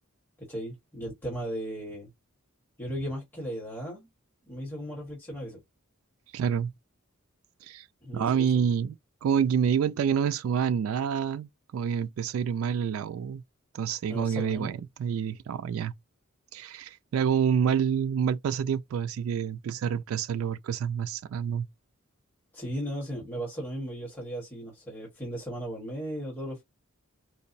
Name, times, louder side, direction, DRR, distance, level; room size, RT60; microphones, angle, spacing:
voice 1, 0.4-2.1 2.8-4.1 4.4-5.6 8.0-8.7 14.1-14.8 22.5-26.6, equal, 10° left, 1.4 m, -36 dB
voice 2, 6.3-6.7 7.7-7.9 8.1-9.0 9.2-13.4 13.7-15.9 16.5-21.7, right 7 dB, 80° right, 0.3 m, -28 dB
4.5 x 2.0 x 2.5 m
head